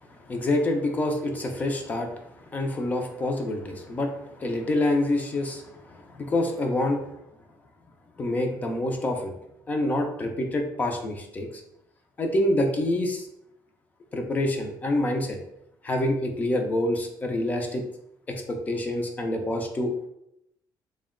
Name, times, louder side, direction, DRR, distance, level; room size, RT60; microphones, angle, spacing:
voice 1, 0.2-2.2 2.5-7.1 8.2-9.3 9.7-11.6 12.2-13.3 14.1-15.4 15.8-17.8 18.3-19.9, left 1 dB, 20° left, 4 dB, 0.4 m, -27 dB
3.7 x 2.1 x 3.6 m, 0.79 s
cardioid pair, 170°, 8 cm